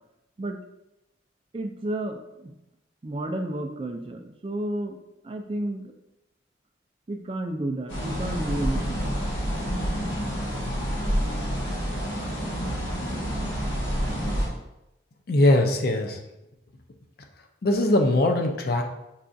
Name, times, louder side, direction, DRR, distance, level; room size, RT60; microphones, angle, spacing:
voice 1, 1.5-2.5 3.0-5.0 5.2-5.9 7.1-9.1, right 1 dB, 30° right, 5 dB, 0.3 m, -31 dB
sound 1, 7.9-14.5, equal, 80° left, 1.3 m, -28 dB
voice 2, 15.3-16.2 17.6-18.8, left 1 dB, 50° left, 4 dB, 0.4 m, -21 dB
5.5 x 2.4 x 2.5 m, 0.90 s
head